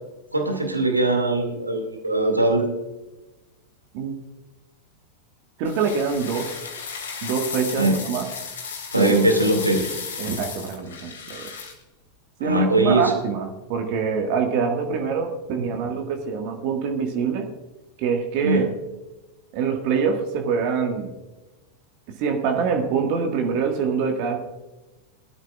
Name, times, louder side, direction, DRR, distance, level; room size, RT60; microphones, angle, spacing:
voice 1, 0.3-2.7 7.8-8.0 8.9-9.8 12.4-13.1 18.4-18.6, right 2 dB, 85° right, 3 dB, 2.3 m, -21 dB
sound 1, 5.6-11.8, left 5 dB, 65° left, 2.9 m, -34 dB
voice 2, 5.6-6.6 7.2-8.2 9.0-9.1 10.2-11.5 12.4-17.5 18.0-18.7 19.5-21.1 22.2-24.4, right 6 dB, 45° right, 3 dB, 1.7 m, -25 dB
20.5 x 12.5 x 2.4 m, 1.1 s
figure-of-eight pair, 90°, 0 cm